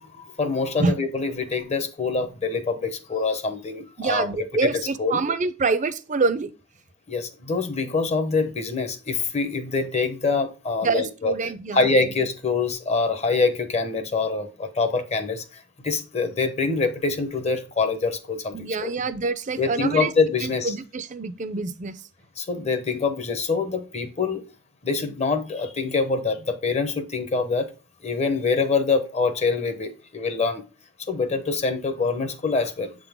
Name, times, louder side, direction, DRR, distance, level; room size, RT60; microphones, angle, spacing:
voice 1, 0.0-4.3 4.6-4.7 5.0-5.2 7.1-11.4 11.7-18.9 19.6-20.7 22.4-24.4 24.8-27.7 28.0-30.6 31.1-32.9, left 4 dB, 35° left, 0.9 m, -25 dB
voice 2, 4.0-6.5 10.8-12.1 18.5-20.1 20.4-22.0, right 3 dB, 40° right, 0.5 m, -26 dB
7.5 x 3.8 x 3.5 m
head